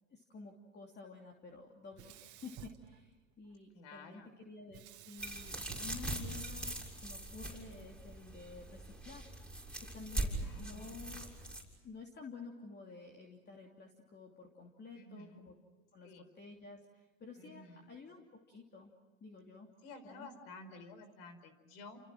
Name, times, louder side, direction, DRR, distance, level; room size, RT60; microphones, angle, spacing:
voice 1, 0.1-9.3 9.5-11.3 11.8-15.5 15.9-18.9 19.2-19.7 20.0-20.3, left 4 dB, 25° left, 1 dB, 3.0 m, -52 dB
Sink (filling or washing), 1.9-3.6 4.7-7.0, right 11 dB, 45° right, 2.3 m, -55 dB
voice 2, 3.7-4.3 10.4-10.9 14.9-15.4 16.0-16.3 17.4-17.9 19.8-22.0, left 3 dB, 65° left, 11 dB, 4.9 m, -53 dB
sound 1, 5.2-11.6, right 1 dB, ahead, 6.7 m, -41 dB
30.0 x 29.0 x 6.2 m, 1.2 s
hypercardioid pair, 110°, 42 cm